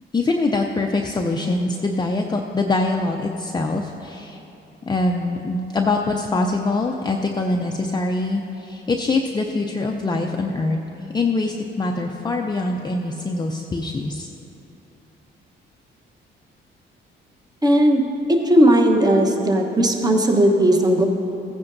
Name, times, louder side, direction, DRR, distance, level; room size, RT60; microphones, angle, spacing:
voice 1, 0.1-4.4 4.9-10.8 11.1-14.3, left 2 dB, 20° left, 1 dB, 0.5 m, -23 dB
voice 2, 17.6-18.0 18.3-21.1, right 1 dB, 20° right, 2 dB, 1.0 m, -16 dB
15.0 x 9.5 x 2.6 m, 3.0 s
cardioid pair, 90°, 20 cm